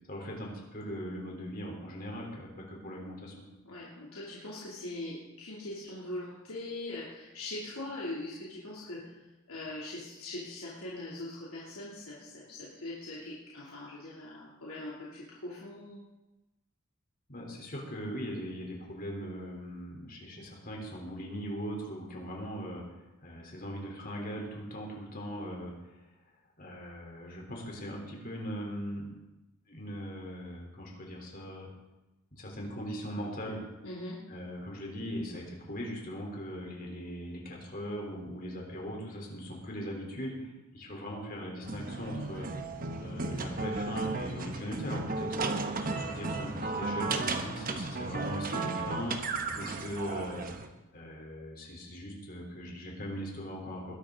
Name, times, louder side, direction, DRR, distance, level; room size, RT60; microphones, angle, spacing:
voice 1, 0.1-3.3 17.3-26.0 26.6-29.1 29.7-31.7 32.3-33.6 34.3-40.3 40.7-42.5 43.0-45.3 45.8-49.2 49.5-50.5 50.9-53.9, equal, 45° left, -1 dB, 3.8 m, -40 dB
voice 2, 3.6-9.2 9.5-16.0 33.8-34.2, left 2 dB, 85° left, -6 dB, 3.0 m, -41 dB
Time Machine Pinball, 41.6-50.7, right 3 dB, 40° right, 1.1 m, -34 dB
20.5 x 11.0 x 3.9 m, 1.0 s
head